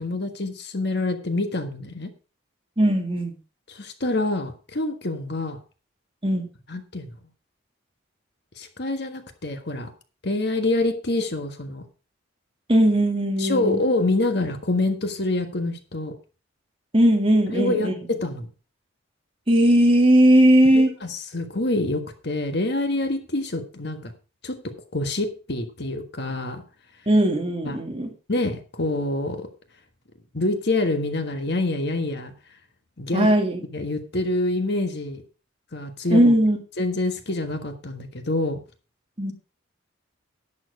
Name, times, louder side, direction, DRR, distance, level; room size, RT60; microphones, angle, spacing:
voice 1, 0.0-2.1 3.7-5.6 6.7-7.1 8.6-9.9 10.2-11.8 13.4-16.1 17.5-18.5 20.7-24.1 24.4-24.6 24.9-26.6 27.6-27.8 28.3-29.5 30.3-32.3 33.0-33.3 33.7-35.2 35.7-36.2 36.8-38.6, left 2 dB, 55° left, 7 dB, 1.5 m, -26 dB
voice 2, 2.8-3.3 6.2-6.5 12.7-13.8 16.9-17.9 19.5-20.9 27.1-28.1 33.1-33.6 36.1-36.6 39.2-39.3, right 1 dB, 25° right, 4 dB, 1.7 m, -18 dB
11.0 x 7.6 x 4.8 m, 0.34 s
head